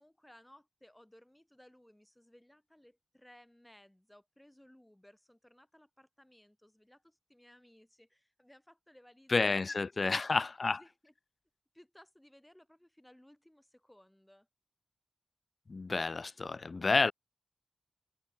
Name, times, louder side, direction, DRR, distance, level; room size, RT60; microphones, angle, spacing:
voice 1, 0.0-10.3 10.8-11.1 11.7-14.5, left 1 dB, 10° left, 4.5 m, -61 dB
voice 2, 9.3-10.8 15.7-17.1, left 3 dB, 55° left, 0.3 m, -30 dB
cardioid pair, 55°, 0 cm